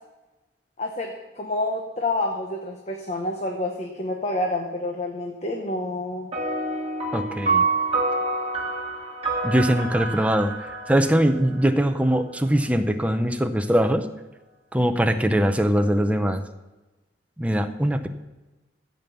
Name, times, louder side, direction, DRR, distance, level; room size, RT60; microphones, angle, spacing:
voice 1, 0.8-6.3, left 2 dB, 40° left, 2 dB, 0.9 m, -28 dB
sound 1, 6.3-12.1, right 3 dB, 35° right, 1.8 m, -27 dB
voice 2, 7.1-7.6 9.4-14.1 14.7-16.4 17.4-18.1, equal, 10° right, 7 dB, 0.6 m, -22 dB
15.0 x 5.3 x 6.8 m, 1.1 s
head